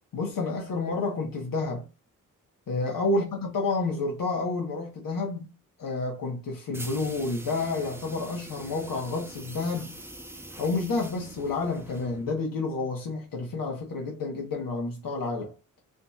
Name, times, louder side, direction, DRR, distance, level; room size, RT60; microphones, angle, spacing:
voice 1, 0.1-1.8 2.7-5.4 5.8-9.9 10.6-15.5, left 3 dB, 80° left, 1.2 m, -29 dB
sound 1, 6.7-12.4, right 1 dB, 5° right, 0.8 m, -44 dB
5.1 x 2.8 x 2.4 m
cardioid pair, 60°, 33 cm